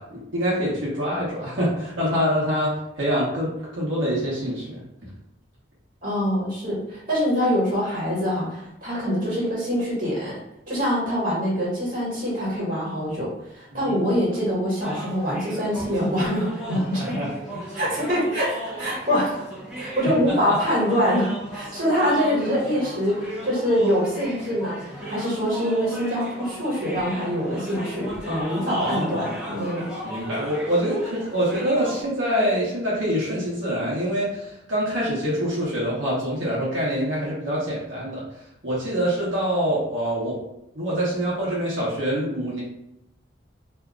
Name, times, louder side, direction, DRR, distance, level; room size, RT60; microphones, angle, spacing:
voice 1, 0.0-4.8 13.7-13.9 17.1-17.7 20.3-20.6 28.7-29.4 30.0-38.2 38.6-40.4 40.8-42.6, equal, 80° right, -7 dB, 1.0 m, -25 dB
voice 2, 6.0-10.4 10.7-17.2 17.7-19.4 19.8-29.9, equal, 45° right, -6 dB, 1.5 m, -24 dB
sound 1, 14.8-32.0, equal, 5° right, 0.7 m, -36 dB
2.7 x 2.4 x 3.5 m, 0.84 s
head